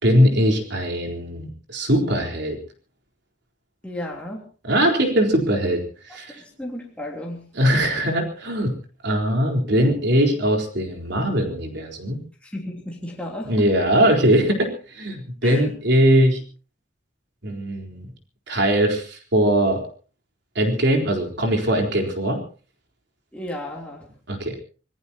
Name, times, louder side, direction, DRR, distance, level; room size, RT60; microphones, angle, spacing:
voice 1, 0.0-2.6 4.6-5.8 6.1-6.4 7.6-8.7 9.0-12.2 13.4-16.4 17.4-18.1 18.5-19.8 20.6-22.4 24.3-24.5, equal, 65° right, 3 dB, 4.2 m, -20 dB
voice 2, 3.8-4.4 6.3-7.4 12.4-13.7 15.4-15.7 23.3-24.1, left 1 dB, 5° left, -2 dB, 3.2 m, -33 dB
26.5 x 18.0 x 2.9 m, 0.37 s
head